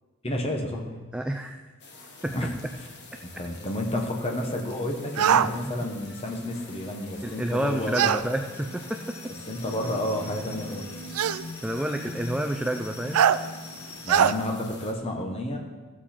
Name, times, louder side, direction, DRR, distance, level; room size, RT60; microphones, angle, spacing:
voice 1, 0.2-0.9 2.3-2.5 2.8-2.9 3.2-8.4 9.5-10.9 14.0-15.6, left 1 dB, 25° left, 2 dB, 1.2 m, -31 dB
voice 2, 1.1-1.6 2.2-2.3 7.2-9.2 11.3-11.4 11.6-13.5, right 1 dB, 5° right, 4 dB, 0.4 m, -29 dB
sound 1, 1.8-14.9, left 3 dB, 50° left, 1.4 m, -47 dB
sound 2, 5.2-5.5 7.9-8.2 9.5-9.6 11.1-11.4 13.1-13.4 14.1-14.3, right 8 dB, 85° right, 0.4 m, -21 dB
sound 3, 7.0-14.3, left 1 dB, 75° left, 1.5 m, -42 dB
15.0 x 7.2 x 4.4 m, 1.3 s
head